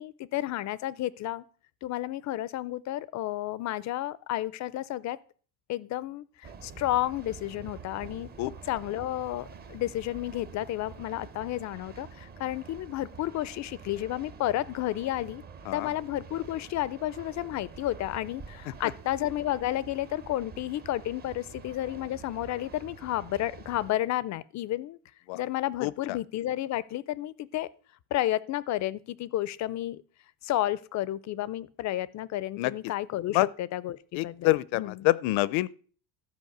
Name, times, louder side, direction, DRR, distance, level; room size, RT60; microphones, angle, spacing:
voice 1, 0.0-1.4 1.8-5.2 5.7-8.3 8.7-15.4 15.7-25.0 25.3-27.7 28.1-30.0 30.4-35.1, left 14 dB, 40° left, 0.4 m, -31 dB
sound 1, 6.4-23.9, right 5 dB, 20° right, 0.7 m, -47 dB
voice 2, 34.1-35.7, left 18 dB, 75° left, 0.7 m, -26 dB
13.5 x 5.3 x 7.8 m
cardioid pair, 170°, 48 cm